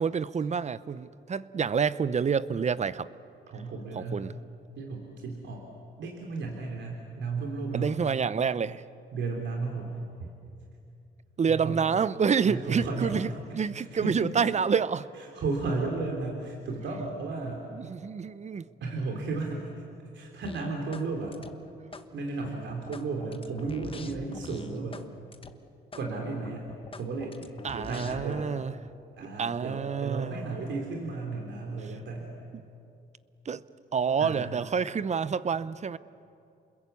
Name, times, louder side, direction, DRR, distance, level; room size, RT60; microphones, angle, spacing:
voice 1, 0.0-3.1 4.0-4.3 7.7-8.8 11.4-13.3 13.6-15.1 17.8-18.7 27.6-28.7 29.4-30.4 33.5-33.6 33.9-36.0, right 6 dB, 35° right, 0.7 m, -28 dB
voice 2, 3.5-4.3 4.8-5.7 6.0-7.9 9.1-10.0 11.5-11.8 12.4-13.2 13.5-14.6 15.2-17.7 18.8-19.7 20.1-21.4 22.1-25.0 26.0-26.7 27.0-27.4 27.7-28.5 29.1-32.4 34.2-34.5, right 3 dB, 65° right, 3.7 m, -34 dB
sound 1, 20.4-21.1 21.3-22.1 22.4-25.1 25.3-25.5 25.9-26.1 26.4-28.4, left 4 dB, 25° left, 1.3 m, -45 dB
29.0 x 21.5 x 8.4 m
cardioid pair, 90°, 20 cm